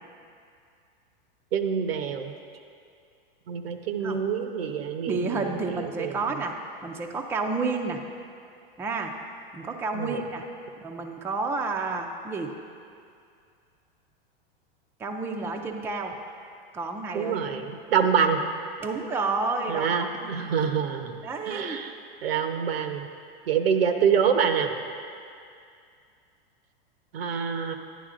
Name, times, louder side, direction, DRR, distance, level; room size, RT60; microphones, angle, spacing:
voice 1, 1.5-2.3 3.5-6.2 9.9-10.2 17.1-18.4 19.7-21.9 22.2-23.1 23.5-24.7 27.1-27.7, right 7 dB, 90° right, 7 dB, 0.8 m, -26 dB
voice 2, 5.1-6.6 6.8-8.0 8.8-9.1 9.5-10.5 10.8-12.6 15.0-16.2 16.7-17.4 18.8-20.4 21.2-21.8, right 3 dB, 10° right, 2 dB, 0.4 m, -30 dB
11.0 x 10.0 x 2.5 m, 2.4 s
hypercardioid pair, 125°, 29 cm